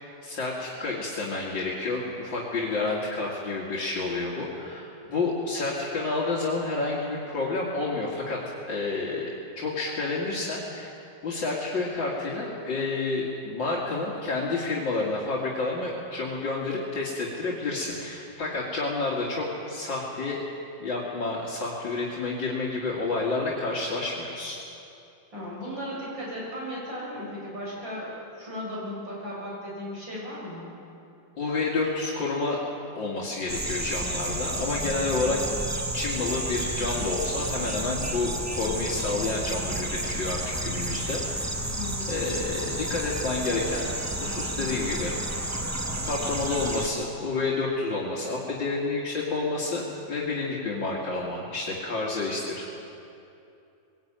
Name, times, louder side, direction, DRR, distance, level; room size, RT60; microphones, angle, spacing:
voice 1, 0.2-8.4 8.7-10.9 11.2-20.4 20.8-24.6 31.4-32.6 33.0-35.4 35.9-41.5 42.1-43.9 44.2-45.4 46.0-52.8, left 3 dB, 70° left, -5 dB, 3.1 m, -29 dB
voice 2, 25.3-30.7 41.8-42.2, equal, 75° right, -5 dB, 8.2 m, -36 dB
sound 1, 33.5-46.9, right 1 dB, 15° right, 0.5 m, -31 dB
21.0 x 18.0 x 9.0 m, 2.7 s
omnidirectional pair, 2.1 m